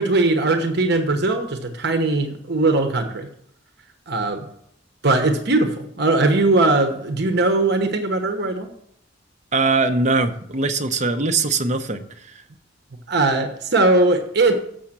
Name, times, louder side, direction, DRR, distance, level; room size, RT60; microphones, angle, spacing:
voice 1, 0.0-3.3 4.1-4.5 5.0-8.7 13.1-14.6, right 2 dB, 60° right, 6 dB, 1.0 m, -20 dB
voice 2, 9.5-12.4, right 3 dB, 40° right, 7 dB, 0.8 m, -21 dB
7.1 x 6.5 x 7.4 m, 0.67 s
head